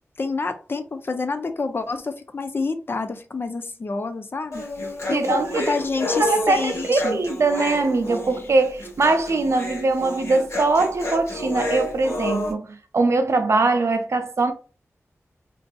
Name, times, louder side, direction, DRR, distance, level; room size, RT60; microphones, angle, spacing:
voice 1, 0.2-7.2, left 4 dB, 45° left, 0.4 m, -28 dB
Human voice, 4.5-12.5, left 1 dB, 65° left, 1.1 m, -30 dB
voice 2, 5.1-14.5, right 3 dB, 65° right, 0.4 m, -22 dB
2.6 x 2.5 x 2.2 m
wide cardioid pair, 95°, 5 cm